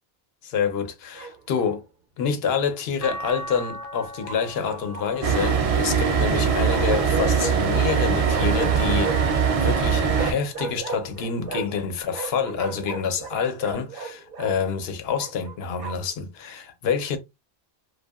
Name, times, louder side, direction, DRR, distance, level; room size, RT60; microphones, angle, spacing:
voice 1, 0.4-1.8 2.2-9.2 9.6-17.2, left 6 dB, 80° left, 0.8 m, -27 dB
Bark, 1.1-1.8 4.2-5.3 6.7-7.6 8.3-9.4 10.1-11.8 12.1-14.5 15.2-16.1, right 5 dB, 70° right, 0.8 m, -35 dB
sound 1, 3.0-9.3 9.9-11.2 12.6-12.7, right 1 dB, 50° left, 0.4 m, -41 dB
sound 2, 5.2-10.3, right 6 dB, 50° right, 0.4 m, -21 dB
2.7 x 2.2 x 2.2 m
omnidirectional pair, 1.0 m